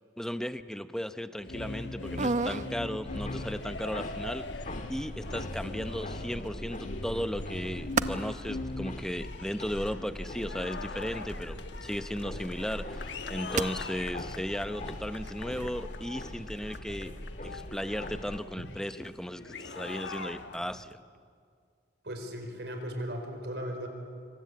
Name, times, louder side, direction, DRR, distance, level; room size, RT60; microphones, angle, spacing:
voice 1, 0.2-4.5 4.9-17.1 17.4-21.0, equal, 5° left, 11 dB, 0.8 m, -36 dB
sound 1, 1.4-20.9, left 3 dB, 80° left, 1.3 m, -41 dB
sound 2, 1.6-18.4, right 4 dB, 45° right, 0.7 m, -40 dB
sound 3, 3.0-18.4, left 1 dB, 45° left, 1.6 m, -42 dB
voice 2, 22.0-23.9, equal, 65° right, 5 dB, 4.7 m, -37 dB
26.5 x 25.0 x 8.5 m, 2.2 s
head